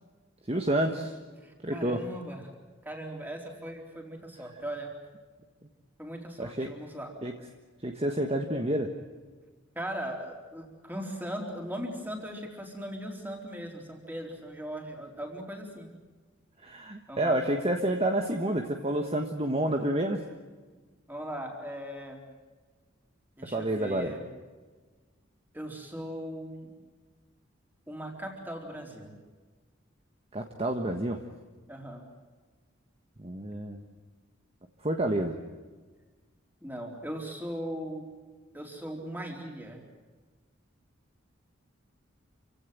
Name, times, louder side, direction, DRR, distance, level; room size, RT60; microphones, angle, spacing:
voice 1, 0.5-1.2 1.6-2.0 6.4-6.7 7.2-7.3 7.8-8.9 16.6-20.2 23.4-24.1 30.3-31.2 33.2-33.8 34.8-35.4, right 1 dB, 30° right, 4 dB, 1.4 m, -29 dB
voice 2, 1.4-2.4 2.8-4.9 6.0-7.1 9.7-15.9 17.1-17.4 21.1-22.2 23.4-24.2 25.5-26.7 27.9-29.2 31.7-32.1 36.6-38.1 38.5-39.8, equal, 10° right, 1 dB, 4.1 m, -39 dB
28.0 x 16.5 x 9.3 m, 1.3 s
head